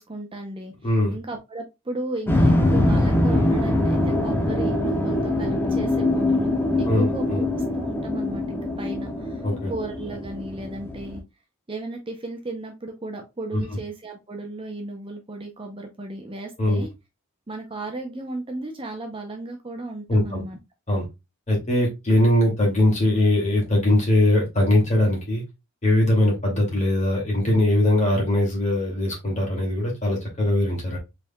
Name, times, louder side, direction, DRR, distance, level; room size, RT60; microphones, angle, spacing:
voice 1, 0.0-11.2 11.7-16.9 17.5-20.6, right 2 dB, 25° right, 4 dB, 0.6 m, -35 dB
voice 2, 0.8-1.1 6.9-7.4 9.4-9.7 13.5-13.6 16.6-16.8 20.1-20.4 20.9-21.0 21.5-25.4 25.8-31.0, left 1 dB, 30° left, -2 dB, 2.3 m, -21 dB
sound 1, 2.3-11.2, left 1 dB, 10° left, 0.7 m, -23 dB
4.9 x 3.6 x 2.2 m, 0.23 s
head